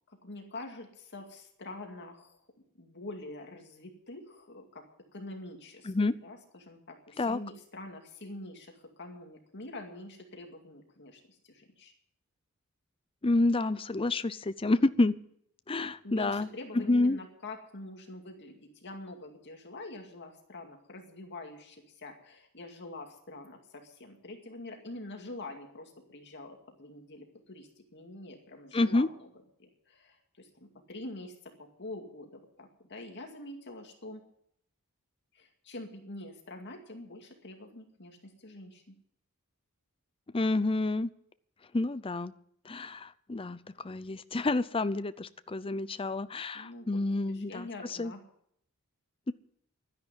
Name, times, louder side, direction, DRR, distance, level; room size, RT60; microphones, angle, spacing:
voice 1, 0.1-2.4 2.8-4.8 5.1-5.9 6.2-11.9 16.0-29.1 29.6-34.2 35.3-38.9 46.5-48.2, left 2 dB, 50° left, 3 dB, 2.3 m, -45 dB
voice 2, 13.2-15.2 15.7-16.5 16.7-17.2 28.7-29.1 40.3-41.1 41.7-42.3 42.6-48.1, left 2 dB, 25° left, 14 dB, 0.6 m, -29 dB
12.0 x 10.5 x 9.2 m, 0.69 s
head